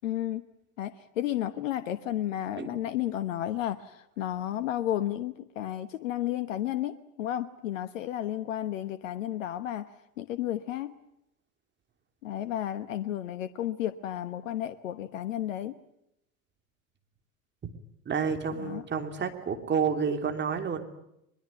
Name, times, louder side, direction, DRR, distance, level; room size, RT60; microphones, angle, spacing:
voice 1, 0.0-0.4 0.8-9.9 10.2-10.9 12.2-15.8 18.6-18.9, left 12 dB, 65° left, 11 dB, 1.2 m, -32 dB
voice 2, 18.1-20.8, right 6 dB, 25° right, 5 dB, 3.1 m, -29 dB
22.5 x 22.0 x 9.3 m, 0.81 s
hypercardioid pair, 85°, 42 cm